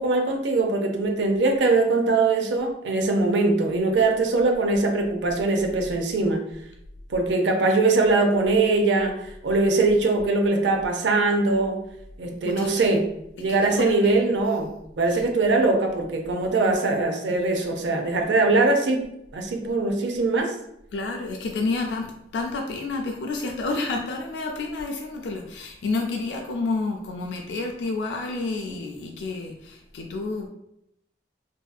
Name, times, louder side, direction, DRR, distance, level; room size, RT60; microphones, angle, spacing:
voice 1, 0.0-6.4 7.1-11.8 12.2-13.1 13.4-14.7 15.0-19.1 19.3-20.5, right 3 dB, 85° right, 3 dB, 0.4 m, -22 dB
voice 2, 12.4-12.9 13.5-14.2 15.1-15.2 20.9-30.5, left 3 dB, 80° left, 2 dB, 0.3 m, -30 dB
2.6 x 2.4 x 2.2 m, 0.79 s
head